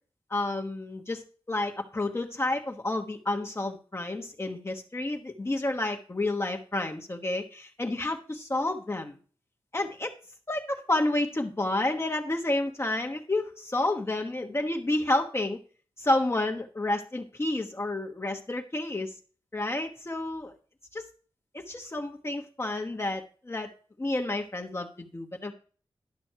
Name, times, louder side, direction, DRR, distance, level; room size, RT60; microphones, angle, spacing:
voice 1, 0.3-1.2 1.5-9.2 9.7-10.1 10.5-15.6 16.0-19.2 19.5-20.5 20.9-21.1 21.5-23.7 24.0-25.5, left 2 dB, 30° left, 3 dB, 1.1 m, -30 dB
11.5 x 6.2 x 4.6 m, 0.40 s
wide cardioid pair, 75°, 9 cm